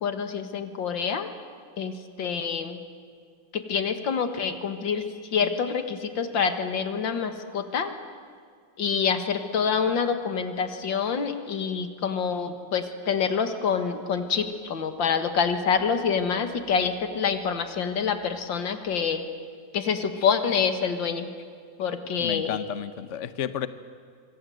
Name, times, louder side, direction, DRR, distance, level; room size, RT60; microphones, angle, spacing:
voice 1, 0.0-1.3 1.8-2.8 3.5-5.0 5.3-7.9 8.8-19.2 19.7-21.3 21.8-22.6, left 6 dB, 80° left, 8 dB, 2.3 m, -26 dB
voice 2, 22.2-23.7, left 9 dB, 55° left, 13 dB, 0.9 m, -32 dB
25.5 x 24.5 x 7.8 m, 2.1 s
omnidirectional pair, 2.0 m